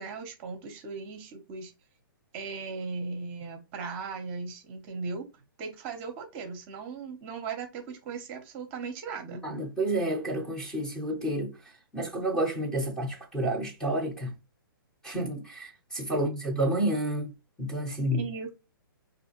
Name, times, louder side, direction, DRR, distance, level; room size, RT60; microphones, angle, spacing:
voice 1, 0.0-1.7 2.3-5.3 5.6-9.4 16.1-16.3 18.1-18.6, right 4 dB, 30° right, 0.7 m, -37 dB
voice 2, 9.4-11.5 11.9-14.4 15.0-17.3 17.6-18.2, right 1 dB, 5° left, 0.7 m, -30 dB
4.2 x 2.6 x 2.9 m
hypercardioid pair, 145°, 12 cm